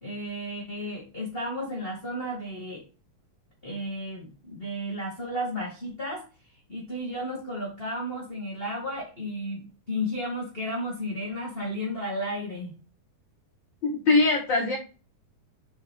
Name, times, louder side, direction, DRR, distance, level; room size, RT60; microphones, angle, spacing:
voice 1, 0.0-2.9 3.6-6.2 6.7-12.7, equal, 25° left, -4 dB, 1.3 m, -33 dB
voice 2, 13.8-14.8, left 3 dB, 65° left, 1 dB, 1.1 m, -22 dB
5.6 x 5.2 x 3.4 m, 0.34 s
omnidirectional pair, 3.8 m